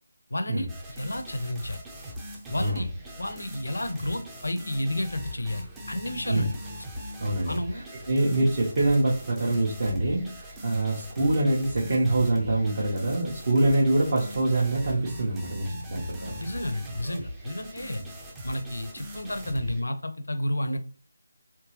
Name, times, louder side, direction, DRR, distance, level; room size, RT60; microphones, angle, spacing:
voice 1, 0.3-0.7 1.0-1.8 2.5-2.9 3.2-6.6 7.5-7.8 16.4-18.0 18.4-20.8, left 1 dB, 70° left, 8 dB, 0.7 m, -31 dB
sound 1, 0.7-19.8, equal, 10° right, 0.6 m, -40 dB
voice 2, 7.2-16.3, right 2 dB, 45° right, -5 dB, 1.2 m, -25 dB
3.6 x 2.9 x 3.1 m, 0.41 s
figure-of-eight pair, 155°, 0 cm